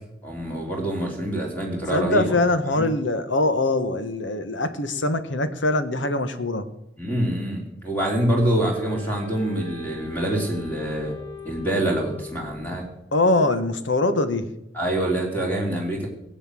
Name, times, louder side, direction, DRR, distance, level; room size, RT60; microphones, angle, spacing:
voice 1, 0.2-2.4 2.7-2.9 7.0-11.2 11.4-12.8 14.7-16.1, right 1 dB, 10° left, -1 dB, 3.3 m, -25 dB
voice 2, 1.9-6.7 13.1-14.5, left 2 dB, 85° left, 10 dB, 1.5 m, -23 dB
Wind instrument woodwind instrument, 8.7-12.7, left 3 dB, 60° left, 6.9 m, -40 dB
20.5 x 8.2 x 7.7 m, 0.86 s
head